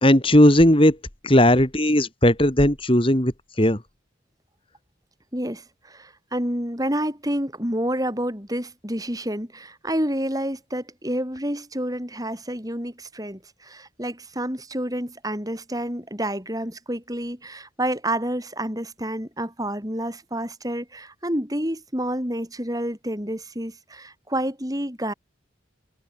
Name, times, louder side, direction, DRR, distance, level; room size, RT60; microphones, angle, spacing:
voice 1, 0.0-1.0 1.2-3.3 3.6-3.8, left 1 dB, 25° left, 2.7 m, -17 dB
voice 2, 5.3-25.1, right 1 dB, 20° right, 7.1 m, -29 dB
head